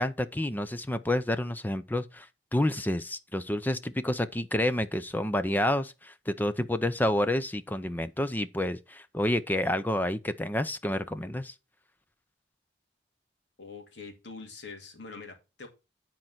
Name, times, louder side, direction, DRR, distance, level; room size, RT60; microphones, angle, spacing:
voice 1, 0.0-2.3 2.5-11.5, left 1 dB, 10° left, 0.5 m, -29 dB
voice 2, 13.6-15.7, left 4 dB, 80° left, 2.6 m, -44 dB
10.0 x 4.5 x 5.7 m
head